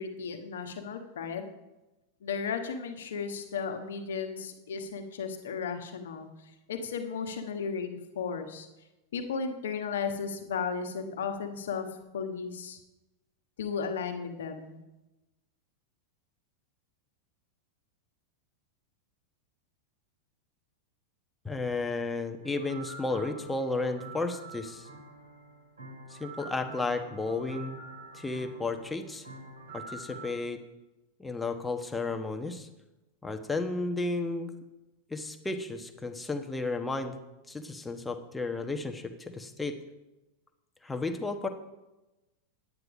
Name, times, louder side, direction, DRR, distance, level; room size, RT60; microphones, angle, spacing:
voice 1, 0.0-1.5 2.2-6.3 6.7-8.7 9.1-11.9 12.1-12.8 13.6-14.8, left 6 dB, 60° left, 6 dB, 1.4 m, -35 dB
voice 2, 21.4-24.9 26.1-27.8 28.1-29.2 29.7-30.6 31.2-32.7 33.2-34.5 35.1-37.1 37.5-39.8 40.8-41.5, left 3 dB, 10° left, 6 dB, 1.2 m, -33 dB
sound 1, 22.4-30.3, right 2 dB, 75° right, 4.0 m, -46 dB
9.8 x 9.5 x 5.1 m, 1.0 s
figure-of-eight pair, 90°, 0 cm